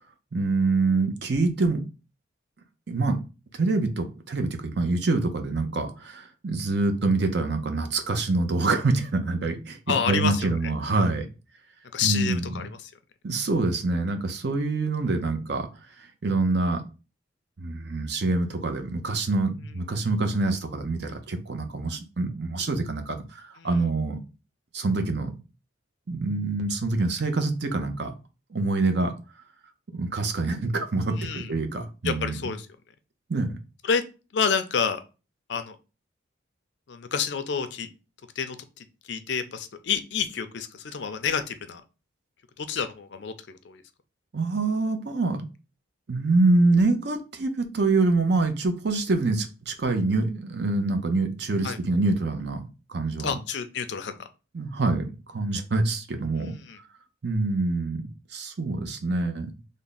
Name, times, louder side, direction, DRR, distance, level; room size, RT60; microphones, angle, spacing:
voice 1, 0.3-1.8 2.9-3.2 3.5-11.3 12.0-12.5 13.2-15.7 16.2-16.8 17.6-24.2 24.7-25.3 26.1-28.1 28.5-29.1 29.9-32.4 33.3-33.6 44.3-45.5 46.1-53.3 54.5-56.5 57.2-59.5, right 3 dB, 55° right, 6 dB, 0.6 m, -25 dB
voice 2, 9.9-10.7 11.9-12.9 23.6-23.8 31.1-31.5 32.0-32.7 33.8-34.0 34.3-35.0 35.5-35.8 36.9-37.9 38.4-41.8 42.6-43.8 51.6-51.8 53.2-54.3 56.4-56.8, left 6 dB, 60° left, 10 dB, 0.4 m, -29 dB
3.4 x 2.1 x 3.9 m, 0.31 s
head